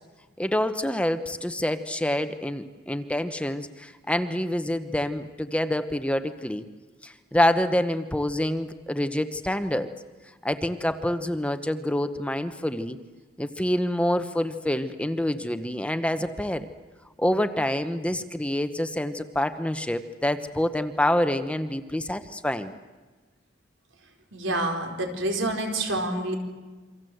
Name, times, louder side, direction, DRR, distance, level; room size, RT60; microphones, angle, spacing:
voice 1, 0.4-6.6 7.0-9.9 10.4-13.0 13.4-16.7 17.2-22.7, left 1 dB, 5° left, 10 dB, 0.9 m, -27 dB
voice 2, 24.3-26.4, right 1 dB, 85° right, 3 dB, 4.5 m, -27 dB
28.0 x 25.0 x 7.9 m, 1.3 s
head